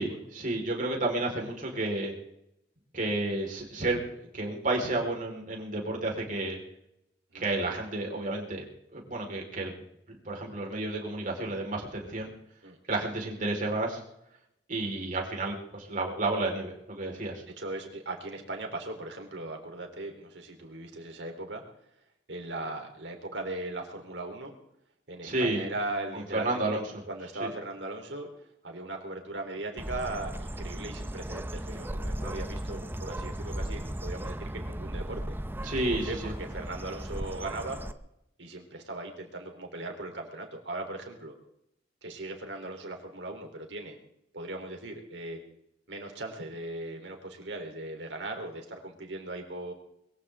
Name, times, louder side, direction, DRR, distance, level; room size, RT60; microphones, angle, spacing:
voice 1, 0.0-2.1 2.9-4.0 4.3-6.6 7.3-8.6 8.9-9.7 10.2-12.3 12.9-14.0 14.7-17.4 25.2-25.6 26.1-26.8 27.4-27.5 35.6-36.3, right 2 dB, 45° right, 0 dB, 4.7 m, -31 dB
voice 2, 17.6-21.6 22.3-24.5 25.1-26.8 27.1-28.3 28.6-35.4 35.9-37.8 38.4-41.3 42.0-44.0 44.3-45.4 45.9-49.7, right 2 dB, 80° right, 3 dB, 3.9 m, -38 dB
Bird, 29.8-37.9, right 1 dB, 10° right, 0.7 m, -36 dB
22.5 x 15.5 x 3.8 m, 0.79 s
head